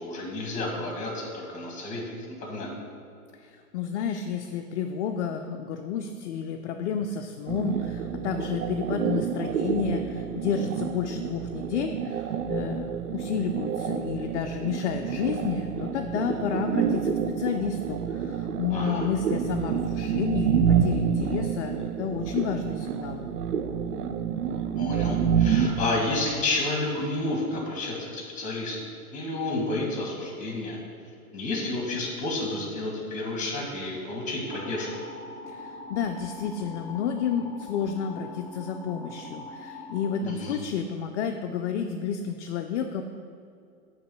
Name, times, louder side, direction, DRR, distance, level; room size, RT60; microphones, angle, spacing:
voice 1, 0.0-2.7 18.7-19.1 24.7-28.8 29.1-30.8 31.3-34.9 40.2-40.6, left 2 dB, 15° left, 0 dB, 1.6 m, -31 dB
voice 2, 3.4-23.3 35.5-43.0, left 7 dB, 50° left, 5 dB, 0.5 m, -31 dB
sound 1, 7.5-25.9, right 8 dB, 85° right, 0.6 m, -28 dB
sound 2, 34.5-40.1, left 2 dB, ahead, 0.6 m, -43 dB
8.4 x 3.2 x 5.6 m, 2.4 s
hypercardioid pair, 120°, 45 cm